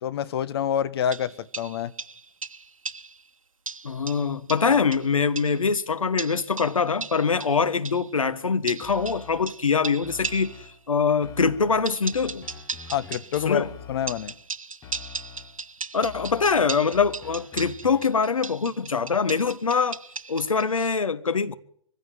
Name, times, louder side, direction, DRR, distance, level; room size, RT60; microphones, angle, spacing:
voice 1, 0.0-1.9 12.9-14.3, left 9 dB, 50° left, 1.3 m, -27 dB
sound 1, 1.1-3.2 3.7-5.7 6.2-8.1 8.7-10.7 11.9-13.5 14.1-20.7, right 4 dB, 80° right, 1.2 m, -37 dB
voice 2, 3.8-10.5 10.9-12.5 13.4-13.7 15.9-20.0 20.3-21.5, left 5 dB, 75° left, 1.5 m, -23 dB
sound 2, 8.8-9.6 10.0-10.8 11.2-14.4 14.8-15.6 16.0-18.2, left 7 dB, 20° left, 1.8 m, -45 dB
23.5 x 15.5 x 7.8 m
figure-of-eight pair, 130°, 17 cm